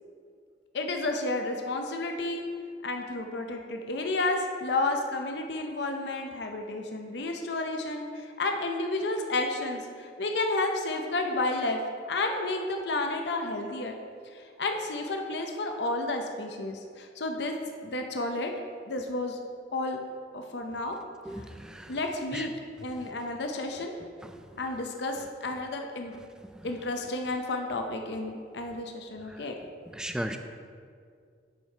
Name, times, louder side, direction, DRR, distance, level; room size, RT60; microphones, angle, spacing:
voice 1, 0.7-2.5 2.8-11.8 12.1-13.9 14.3-17.5 17.8-18.5 18.9-19.4 19.7-20.0 20.3-21.0 21.9-22.5 22.8-23.9 24.6-26.1 26.6-29.5, left 2 dB, 65° left, 3 dB, 0.7 m, -31 dB
voice 2, 21.2-22.0 22.3-22.5 24.2-24.5 26.4-26.7 29.3-29.4 29.9-30.4, equal, 5° right, 7 dB, 0.3 m, -37 dB
7.3 x 6.6 x 4.4 m, 2.2 s
head